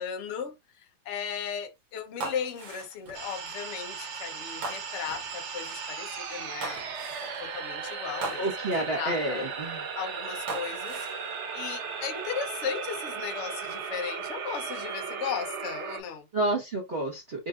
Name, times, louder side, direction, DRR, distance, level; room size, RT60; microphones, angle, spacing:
voice 1, 0.0-6.8 7.2-8.4 8.9-9.5 9.9-16.3, left 7 dB, 65° left, 0.7 m, -36 dB
sound 1, 2.2-3.3 4.6-5.3 6.6-7.4 8.2-9.0 10.5-11.2 11.9-12.4, right 3 dB, 60° right, 1.6 m, -39 dB
sound 2, 3.1-16.0, right 6 dB, 80° right, 0.6 m, -36 dB
voice 2, 8.4-9.8 16.3-17.5, right 1 dB, 45° right, 0.8 m, -29 dB
5.2 x 2.6 x 2.3 m
omnidirectional pair, 2.3 m